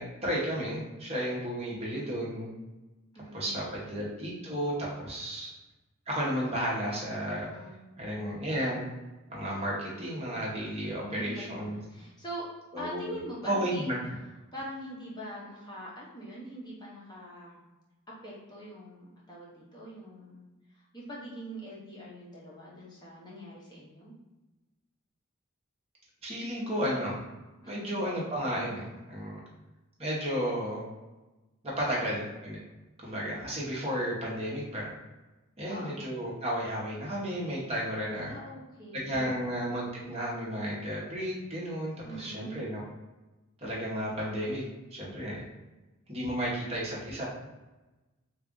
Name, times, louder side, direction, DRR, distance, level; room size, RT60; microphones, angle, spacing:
voice 1, 0.0-2.5 3.3-5.5 6.1-7.5 8.0-8.9 9.3-11.8 12.7-13.2 13.4-14.0 26.2-27.2 27.7-29.4 30.0-30.8 31.6-32.6 33.0-34.9 35.6-38.3 38.9-42.8 43.6-44.6 44.9-45.4 46.1-47.2, equal, 30° right, -5 dB, 1.0 m, -33 dB
voice 2, 3.1-3.6 7.5-7.8 10.8-12.5 12.8-13.9 14.5-17.6 18.1-20.4 20.7-24.1 27.6-27.9 31.9-32.2 35.7-36.0 38.1-39.3 42.0-42.7, right 1 dB, 20° left, -6 dB, 0.8 m, -43 dB
3.4 x 2.5 x 3.7 m, 1.1 s
head